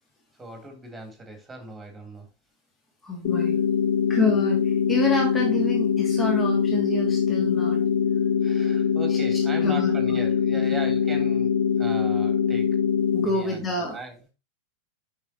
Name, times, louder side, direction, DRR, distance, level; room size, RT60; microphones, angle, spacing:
voice 1, 0.4-2.3 8.4-12.7 13.2-14.2, right 2 dB, 10° right, 3.0 m, -39 dB
voice 2, 3.0-3.6 4.1-7.8 9.6-10.2 10.5-10.6 13.1-14.0, left 2 dB, 15° left, 2.3 m, -27 dB
sound 1, 3.2-13.3, left 7 dB, 55° left, 0.8 m, -23 dB
8.7 x 6.2 x 2.8 m
figure-of-eight pair, 90°, 0 cm